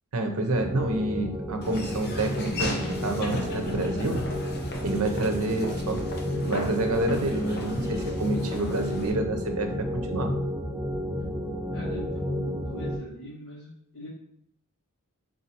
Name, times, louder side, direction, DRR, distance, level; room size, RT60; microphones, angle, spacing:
voice 1, 0.1-2.8 3.0-4.2 4.8-6.1 6.4-10.3, right 2 dB, 75° right, 4 dB, 0.7 m, -28 dB
sound 1, 0.5-13.0, equal, 15° right, 0.4 m, -32 dB
Laughter / Walk footsteps, 1.6-9.1, left 1 dB, 45° left, 0.7 m, -36 dB
voice 2, 11.7-14.1, left 1 dB, 70° left, -5 dB, 1.4 m, -41 dB
3.8 x 2.7 x 4.2 m, 0.73 s
head